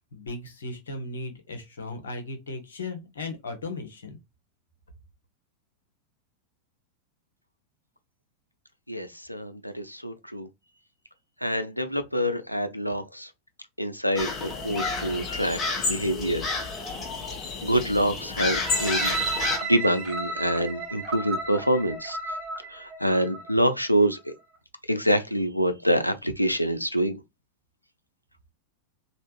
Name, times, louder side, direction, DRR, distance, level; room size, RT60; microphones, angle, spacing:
voice 1, 0.1-4.2, left 2 dB, 65° left, 0.9 m, -36 dB
voice 2, 8.9-10.5 11.4-13.3 13.8-15.6 15.8-16.4 17.6-22.2 22.7-24.3 24.9-27.2, equal, 90° left, 0.4 m, -26 dB
sound 1, 14.2-19.6, left 3 dB, 25° left, 1.0 m, -30 dB
sound 2, 18.6-23.6 24.2-24.3, right 3 dB, 30° right, 1.1 m, -33 dB
3.3 x 2.5 x 2.9 m
figure-of-eight pair, 90°, 0 cm